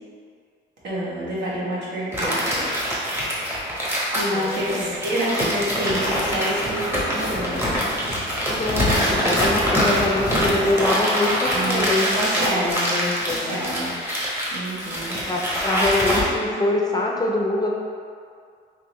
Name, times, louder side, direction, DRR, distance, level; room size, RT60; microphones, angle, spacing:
voice 1, 0.8-2.7 4.1-7.6 11.5-13.9 14.5-15.2, equal, 60° right, -7 dB, 1.2 m, -27 dB
sound 1, 2.1-16.2, equal, 10° right, 1.0 m, -24 dB
voice 2, 4.3-5.0 8.5-12.0 12.3-13.6 15.3-17.7, left 2 dB, 20° left, -2 dB, 0.6 m, -25 dB
3.7 x 2.9 x 3.0 m, 2.2 s
cardioid pair, 90°, 20 cm